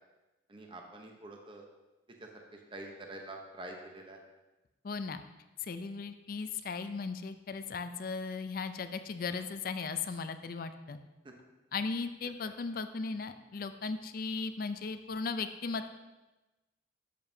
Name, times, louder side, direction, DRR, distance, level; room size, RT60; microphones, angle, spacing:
voice 1, 0.5-1.6 2.2-4.2 11.2-11.3 12.4-12.5, right 2 dB, 25° right, 2 dB, 0.8 m, -46 dB
voice 2, 4.8-5.2 5.6-11.0 11.7-15.9, left 4 dB, 50° left, 10 dB, 0.4 m, -37 dB
11.5 x 7.6 x 2.7 m, 1.1 s
head